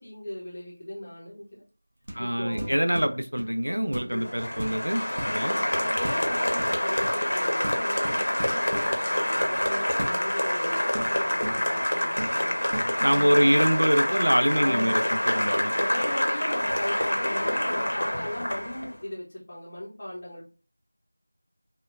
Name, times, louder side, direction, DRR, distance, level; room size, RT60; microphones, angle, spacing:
voice 1, 0.0-1.6 2.1-2.7 4.1-4.3 5.4-12.6 13.1-13.6 14.5-15.1 15.3-20.5, left 1 dB, 30° left, -7 dB, 0.6 m, -37 dB
sound 1, 2.0-2.3 2.6-3.6 3.9-4.2 4.6-5.4 6.0-6.3 6.6-7.2 7.6-8.9 10.0-10.2 10.9-11.9 12.2-12.4 12.7-12.9, right 1 dB, 50° right, 0.8 m, -36 dB
voice 2, 2.1-5.6 13.0-15.7, equal, 85° right, 7 dB, 0.5 m, -25 dB
Applause, 4.1-18.9, left 1 dB, 65° left, 0.8 m, -27 dB
3.7 x 2.2 x 2.4 m, 0.36 s
figure-of-eight pair, 175°, 0 cm